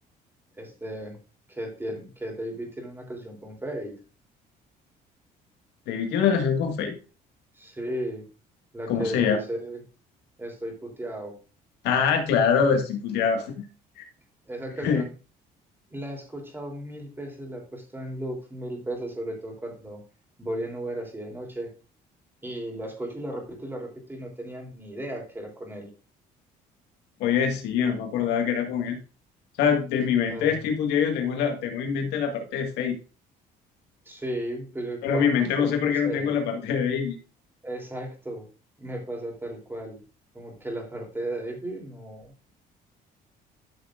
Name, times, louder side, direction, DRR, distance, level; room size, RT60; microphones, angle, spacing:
voice 1, 0.6-1.2 1.5-3.9 7.5-8.2 8.7-9.8 10.4-11.4 14.4-15.1 15.9-20.0 20.4-21.7 22.4-25.9 30.3-30.6 34.0-36.4 37.6-38.5 38.8-40.0 40.3-42.3, right 1 dB, 15° right, 0 dB, 3.2 m, -35 dB
voice 2, 5.9-6.9 8.9-9.4 11.8-13.7 14.0-14.1 14.8-15.0 27.2-29.0 29.6-32.9 35.0-37.2, left 7 dB, 90° left, 4 dB, 1.8 m, -24 dB
12.5 x 6.4 x 2.5 m, 0.34 s
cardioid pair, 110°, 17 cm